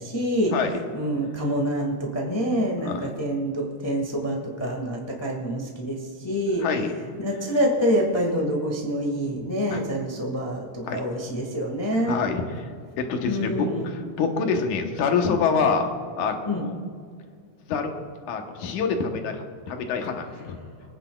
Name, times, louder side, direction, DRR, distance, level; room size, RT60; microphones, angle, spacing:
voice 1, 0.0-0.5 0.9-6.6 7.2-12.3 13.3-13.9 15.6-15.7 16.5-16.6, equal, 20° left, -1 dB, 0.7 m, -26 dB
voice 2, 0.5-0.8 2.8-3.1 6.6-6.9 9.7-9.8 10.9-11.0 12.0-12.7 13.0-15.9 16.2-16.7 17.7-17.9 18.3-20.6, left 5 dB, 90° left, 4 dB, 2.6 m, -26 dB
29.5 x 9.9 x 2.4 m, 2.1 s
omnidirectional pair, 3.4 m